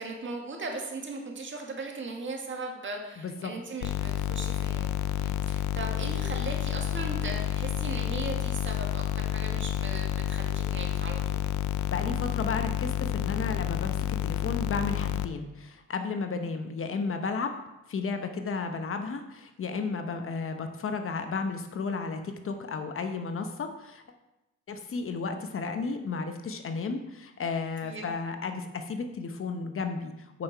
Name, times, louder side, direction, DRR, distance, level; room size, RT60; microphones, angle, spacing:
voice 1, 0.0-11.4 27.8-28.1, right 3 dB, 40° right, 1 dB, 1.9 m, -38 dB
voice 2, 3.2-3.5 11.9-14.0 14.2-17.5 17.9-24.0 24.7-30.4, left 4 dB, 45° left, 6 dB, 0.9 m, -33 dB
sound 1, 3.8-15.3, left 11 dB, 70° left, 0.5 m, -30 dB
8.6 x 5.9 x 4.7 m, 0.97 s
cardioid pair, 90°, 30 cm